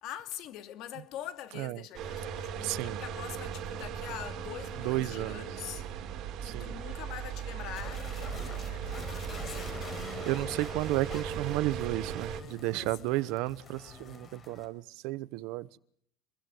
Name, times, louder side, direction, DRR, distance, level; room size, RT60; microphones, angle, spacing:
voice 1, 0.0-5.9 6.4-10.0 12.7-12.9, left 11 dB, 45° left, 2.6 m, -44 dB
sound 1, 1.9-12.4, right 8 dB, 40° right, 3.5 m, -38 dB
voice 2, 2.6-3.0 4.8-5.4 6.4-6.7 10.0-15.8, right 18 dB, 55° right, 1.0 m, -33 dB
sound 2, 7.7-14.7, left 3 dB, 20° left, 4.8 m, -45 dB
26.0 x 22.5 x 7.9 m
cardioid pair, 170°, 0 cm